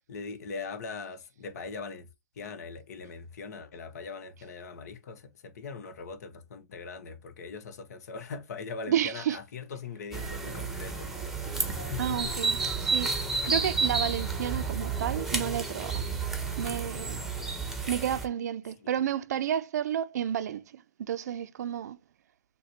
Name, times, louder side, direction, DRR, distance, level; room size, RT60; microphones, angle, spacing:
voice 1, 0.0-2.1 2.4-11.1 11.8-12.3 18.8-18.9, left 5 dB, 65° left, 0.9 m, -41 dB
voice 2, 8.9-9.4 12.0-13.1 13.4-16.0 16.6-17.2 17.9-22.0, right 10 dB, 70° right, 0.5 m, -31 dB
sound 1, 10.1-18.2, right 4 dB, 5° right, 0.8 m, -31 dB
6.5 x 2.2 x 2.7 m
hypercardioid pair, 130°, 9 cm